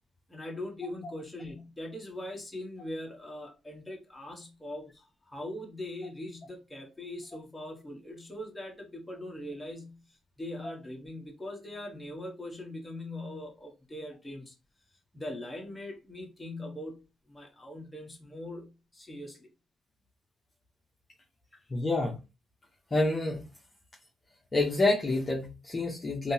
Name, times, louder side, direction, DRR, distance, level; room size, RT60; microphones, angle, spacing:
voice 1, 0.3-14.5 15.1-17.0 17.3-19.5 21.5-21.6, left 1 dB, 10° left, 1.3 m, -41 dB
voice 2, 21.7-22.2 22.9-23.4 24.5-26.3, left 2 dB, 30° left, 0.9 m, -27 dB
3.5 x 2.7 x 2.8 m
cardioid pair, 90°, 0 cm